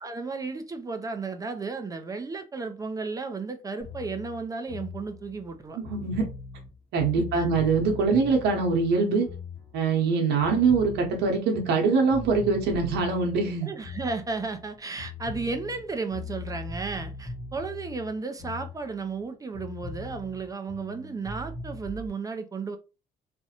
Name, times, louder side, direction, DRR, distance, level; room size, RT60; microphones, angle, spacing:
voice 1, 0.0-5.8 7.2-7.5 13.6-22.8, right 4 dB, 20° right, 0.3 m, -34 dB
sound 1, 3.8-10.1 10.4-14.7 15.0-19.3 19.5-22.1, left 3 dB, 25° left, 0.9 m, -40 dB
voice 2, 5.8-6.2 6.9-9.3 9.7-13.7, right 4 dB, 80° right, 0.8 m, -23 dB
2.4 x 2.1 x 2.8 m
cardioid pair, 110°, 17 cm